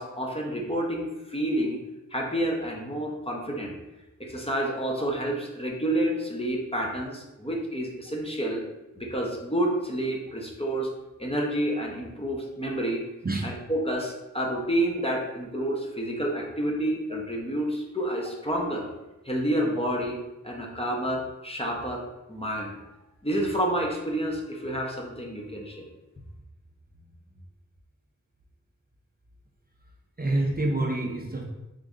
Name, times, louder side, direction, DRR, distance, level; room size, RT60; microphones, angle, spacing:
voice 1, 0.0-1.8 2.1-3.7 4.2-8.6 9.0-10.9 11.2-13.1 13.4-18.9 19.2-22.0 22.3-22.8 23.2-25.9, right 1 dB, 20° left, -1 dB, 0.7 m, -29 dB
voice 2, 13.2-13.6 30.2-31.4, right 2 dB, 30° right, 0 dB, 0.5 m, -27 dB
3.6 x 2.6 x 3.6 m, 0.99 s
wide cardioid pair, 65°, 31 cm